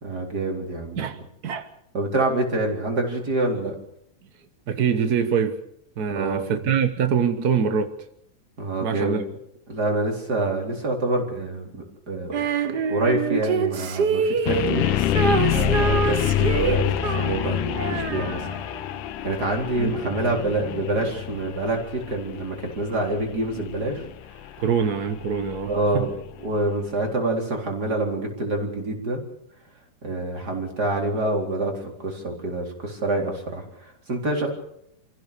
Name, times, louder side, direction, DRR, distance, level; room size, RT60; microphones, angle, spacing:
voice 1, 0.0-1.1 1.9-3.8 6.1-6.6 8.6-9.2 9.7-12.4 12.9-15.2 15.5-18.4 19.2-24.4 25.7-26.1 26.4-29.2 30.0-34.5, right 2 dB, 30° right, 2 dB, 4.4 m, -27 dB
voice 2, 1.0-1.7 4.7-5.6 6.0-7.9 8.8-9.2 19.8-19.9 24.6-26.1, right 7 dB, 55° right, 8 dB, 1.0 m, -24 dB
Female singing, 12.3-18.8, right 6 dB, 85° right, 0.9 m, -26 dB
sound 1, 14.5-26.4, left 11 dB, 85° left, 2.4 m, -27 dB
27.5 x 15.5 x 6.8 m, 0.75 s
omnidirectional pair, 3.5 m